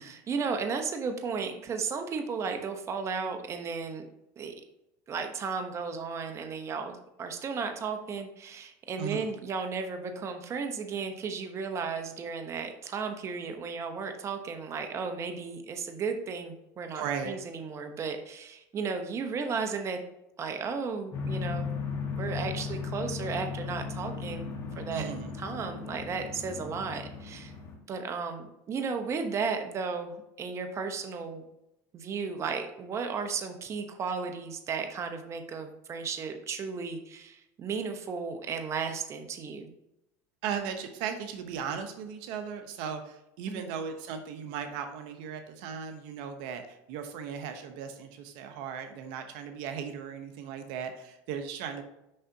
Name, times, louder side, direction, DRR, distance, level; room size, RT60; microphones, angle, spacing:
voice 1, 0.0-4.1 4.4-4.5 5.1-20.0 20.4-21.7 22.1-24.5 24.8-25.1 25.4-27.5 27.9-31.4 31.9-39.7 43.5-43.7, right 5 dB, 35° right, 6 dB, 0.9 m, -34 dB
voice 2, 9.0-9.3 16.9-17.4 24.9-25.3 40.4-51.8, right 7 dB, 70° right, 7 dB, 0.8 m, -37 dB
sound 1, 21.1-27.7, left 5 dB, 40° left, 1.6 m, -36 dB
6.5 x 5.7 x 2.8 m, 0.87 s
supercardioid pair, 110°, 8 cm